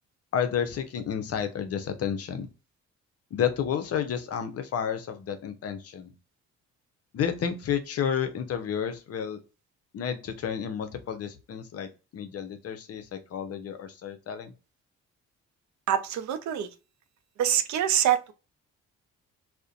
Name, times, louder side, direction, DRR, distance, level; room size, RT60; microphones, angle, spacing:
voice 1, 0.3-2.5 3.3-6.1 7.1-9.4 9.9-14.5, left 8 dB, 55° left, 0.6 m, -31 dB
voice 2, 15.9-16.7 17.4-18.3, right 10 dB, 70° right, 0.5 m, -25 dB
2.5 x 2.1 x 2.4 m
cardioid pair, 90°, 30 cm